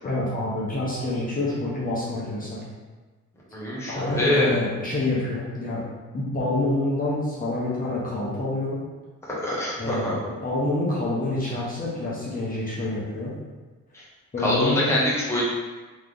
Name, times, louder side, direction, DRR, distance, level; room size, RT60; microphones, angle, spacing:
voice 1, 0.0-2.6 3.9-5.8 6.1-8.8 9.8-13.3 14.3-14.9, left 2 dB, 30° left, -7 dB, 1.2 m, -27 dB
voice 2, 3.5-4.6 9.3-10.2 13.9-14.0 14.4-15.5, left 1 dB, 10° left, -7 dB, 1.2 m, -24 dB
3.2 x 3.2 x 3.9 m, 1.3 s
cardioid pair, 90°, 30 cm